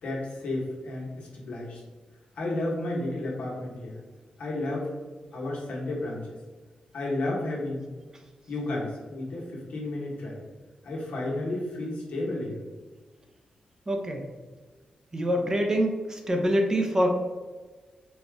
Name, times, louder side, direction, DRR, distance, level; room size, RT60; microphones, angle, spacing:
voice 1, 0.0-1.8 2.3-4.0 4.4-4.9 5.3-6.2 6.9-7.9 8.5-10.4 10.8-12.6, left 2 dB, 85° left, -4 dB, 1.3 m, -32 dB
voice 2, 13.9-14.3 15.1-17.1, equal, 25° right, 2 dB, 0.6 m, -25 dB
4.1 x 2.4 x 3.4 m, 1.3 s
cardioid pair, 85°, 2 cm